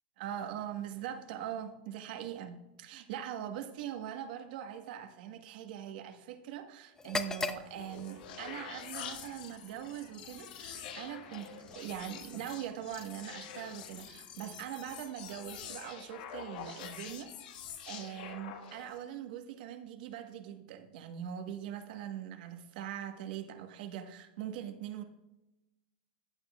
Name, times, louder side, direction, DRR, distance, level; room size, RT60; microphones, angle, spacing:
voice 1, 0.2-11.5 11.7-25.0, right 10 dB, 65° right, 7 dB, 1.3 m, -42 dB
sound 1, 6.9-14.8, left 3 dB, 10° left, 0.6 m, -44 dB
sound 2, 7.6-19.0, left 8 dB, 65° left, 1.4 m, -46 dB
15.0 x 9.7 x 2.4 m, 0.97 s
hypercardioid pair, 120°, 5 cm